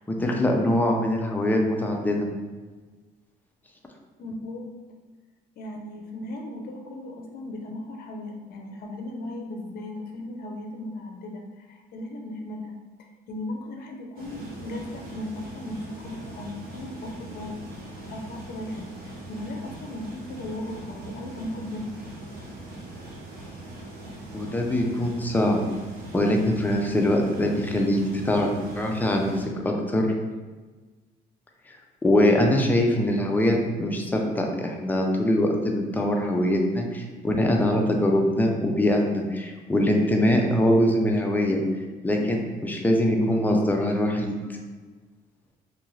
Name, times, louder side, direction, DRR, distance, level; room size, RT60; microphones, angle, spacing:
voice 1, 0.2-2.2 24.3-25.6 26.1-30.1 31.7-31.8 32.0-41.6 42.0-44.3, left 1 dB, 10° left, 1 dB, 0.4 m, -23 dB
voice 2, 4.2-4.7 5.6-17.6 18.1-22.0, left 1 dB, 60° left, 2 dB, 0.6 m, -37 dB
sound 1, 14.2-29.5, right 1 dB, 65° right, 0.8 m, -41 dB
2.7 x 2.5 x 3.1 m, 1.3 s
cardioid pair, 110°, 17 cm